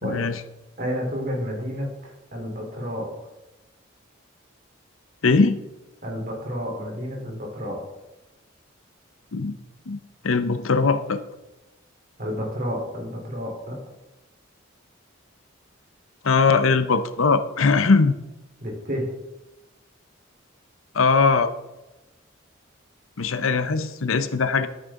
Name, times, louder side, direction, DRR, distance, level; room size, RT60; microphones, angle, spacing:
voice 1, 0.0-0.4 5.2-5.6 9.3-9.6 9.9-10.0 10.2-11.2 16.2-18.2 20.9-21.5 23.2-24.7, left 4 dB, 85° left, 11 dB, 0.8 m, -20 dB
voice 2, 0.8-3.1 6.0-7.8 12.2-13.8 18.6-19.1, equal, 45° right, 0 dB, 3.5 m, -30 dB
12.0 x 9.1 x 3.7 m, 1.0 s
head